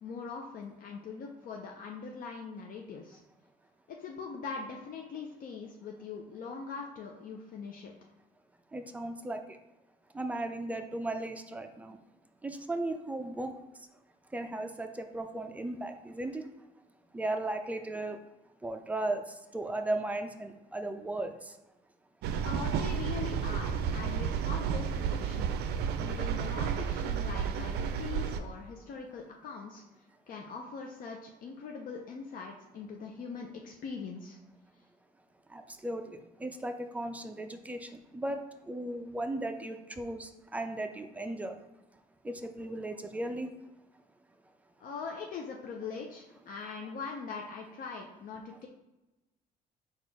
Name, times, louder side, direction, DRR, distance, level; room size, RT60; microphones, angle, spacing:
voice 1, 0.0-3.2 3.9-7.9 22.5-25.6 26.0-29.8 30.3-34.4 44.8-48.7, left 5 dB, 55° left, 1 dB, 0.5 m, -42 dB
voice 2, 8.7-9.6 10.1-12.0 12.4-13.5 14.3-16.4 17.1-18.2 18.6-21.5 35.5-38.4 38.7-41.6 42.2-43.5, right 2 dB, 10° right, 6 dB, 0.4 m, -36 dB
sound 1, 22.2-28.4, right 7 dB, 75° right, 0.4 m, -32 dB
4.3 x 2.4 x 4.6 m, 1.0 s
cardioid pair, 110°, 17 cm